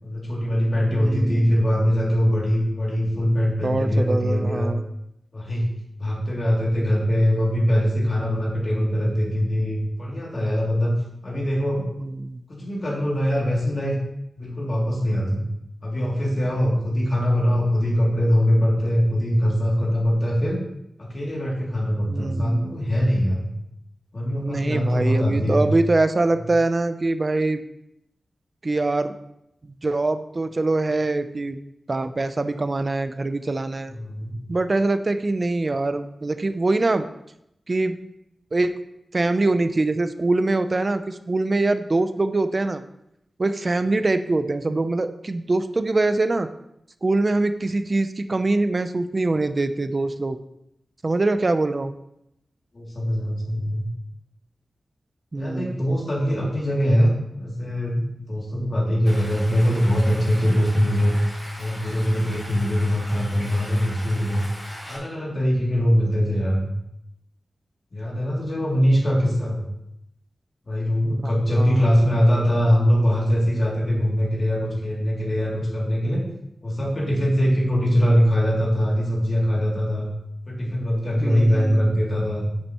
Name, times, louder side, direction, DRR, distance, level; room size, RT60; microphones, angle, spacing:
voice 1, 0.0-4.7 5.3-5.7 6.0-10.9 11.2-11.9 12.5-13.9 14.3-15.4 15.8-20.6 21.0-23.4 24.1-25.7 33.9-34.3 52.7-53.9 55.3-57.1 57.4-61.2 61.6-64.4 64.9-66.7 67.9-69.6 70.6-76.2 76.6-80.1 80.5-82.5, equal, 40° left, -3 dB, 2.6 m, -22 dB
voice 2, 0.9-1.5 3.6-4.8 12.0-12.4 22.1-22.8 24.4-27.6 28.6-29.1 29.8-31.6 31.9-33.9 34.5-37.1 37.7-38.0 38.5-38.7 39.1-42.8 43.4-46.5 47.0-50.4 51.0-51.9 55.3-55.8 71.2-71.9 81.1-81.9, right 2 dB, 35° right, 10 dB, 0.5 m, -23 dB
Stream, 59.1-65.0, equal, 25° left, 3.4 m, -39 dB
9.7 x 8.7 x 3.0 m, 0.82 s
wide cardioid pair, 130°, 0 cm